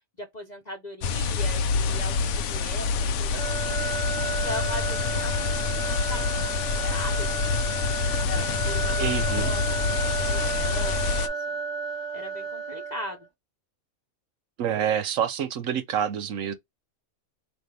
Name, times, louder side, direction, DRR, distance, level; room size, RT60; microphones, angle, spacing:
voice 1, 0.2-7.5 8.2-9.6 9.9-11.6 12.1-13.3, left 1 dB, 35° left, 0.9 m, -39 dB
sound 1, 1.0-11.3, left 5 dB, 70° left, 0.9 m, -27 dB
sound 2, 3.3-13.3, right 4 dB, 20° right, 1.1 m, -32 dB
voice 2, 9.0-9.5 14.6-16.5, right 9 dB, 75° right, 1.1 m, -27 dB
4.8 x 2.7 x 3.3 m
omnidirectional pair, 1.4 m